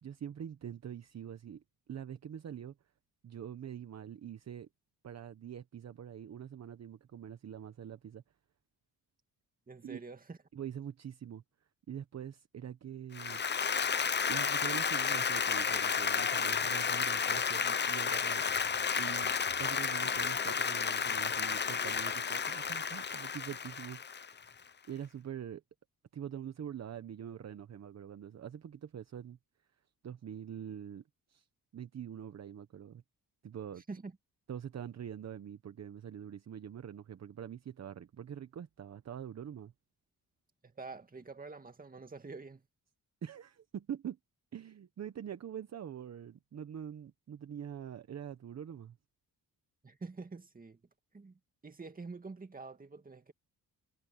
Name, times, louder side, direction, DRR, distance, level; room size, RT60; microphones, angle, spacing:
voice 1, 0.0-1.6 1.9-2.7 3.2-4.7 5.0-8.2 9.8-10.0 10.5-11.4 11.9-13.4 14.3-18.4 18.9-24.0 24.4-24.5 24.8-25.6 26.1-29.4 30.0-31.0 31.3-31.5 31.7-33.0 33.4-33.8 34.5-39.7 43.2-44.2 44.5-49.0, right 9 dB, 45° right, 0.9 m, -44 dB
voice 2, 9.7-10.4 33.8-34.2 40.6-42.6 49.8-50.8 51.1-53.3, right 4 dB, 25° right, 2.2 m, -47 dB
Applause, 13.1-24.5, left 6 dB, 30° left, 0.7 m, -32 dB
cardioid pair, 125°, 37 cm